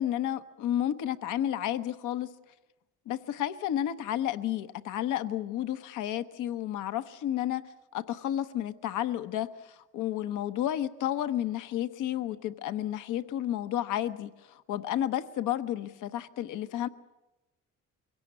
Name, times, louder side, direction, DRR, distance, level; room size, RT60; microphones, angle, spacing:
voice 1, 0.0-2.3 3.1-7.6 7.9-16.9, left 11 dB, 90° left, 11 dB, 1.0 m, -31 dB
23.0 x 17.5 x 9.4 m, 1.0 s
cardioid pair, 90°, 30 cm